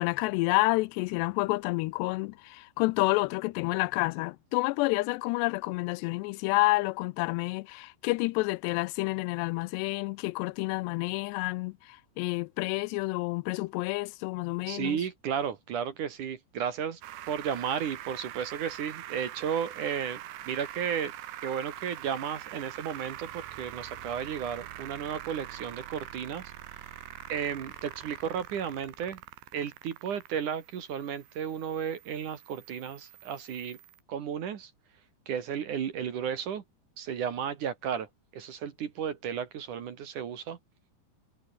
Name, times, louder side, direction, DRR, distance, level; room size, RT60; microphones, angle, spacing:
voice 1, 0.0-15.0, left 23 dB, 85° left, 2.7 m, -29 dB
voice 2, 14.7-17.0 17.3-20.2 20.5-21.1 21.4-26.4 27.3-29.2 29.5-33.8 34.1-34.7 35.3-36.6 37.0-40.6, right 8 dB, 55° right, 2.9 m, -33 dB
sound 1, 17.0-34.0, right 13 dB, 85° right, 3.8 m, -44 dB
omnidirectional pair, 4.9 m